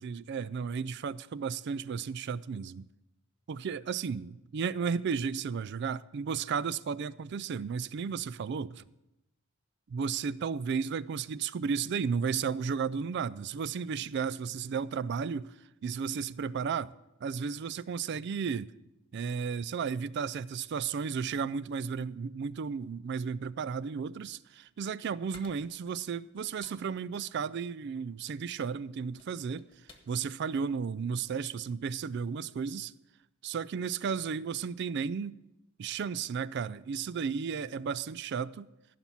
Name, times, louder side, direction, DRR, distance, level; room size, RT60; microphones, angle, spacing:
voice 1, 0.0-2.9 3.5-8.8 9.9-15.5 15.8-16.9 17.2-18.7 19.1-29.7 30.1-32.9 33.4-35.4 35.8-38.7, right 6 dB, 55° right, 0.4 m, -34 dB
sound 1, 24.7-31.9, left 3 dB, 25° left, 1.3 m, -59 dB
14.5 x 5.9 x 7.0 m
head